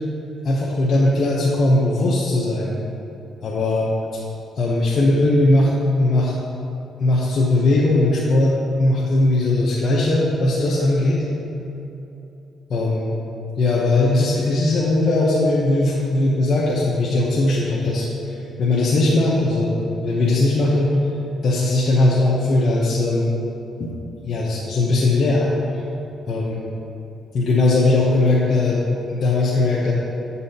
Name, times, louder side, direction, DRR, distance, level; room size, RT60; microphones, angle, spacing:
voice 1, 0.4-2.7 3.4-3.9 4.6-5.7 6.0-6.3 7.0-11.2 12.7-13.1 13.6-21.0 21.4-23.3 23.8-23.9 24.3-25.5 25.7-25.8 26.3-26.6 27.3-28.8 29.1-29.9, left 2 dB, 55° left, -5 dB, 0.8 m, -19 dB
7.6 x 5.5 x 2.8 m, 2.9 s
cardioid pair, 90°, 0 cm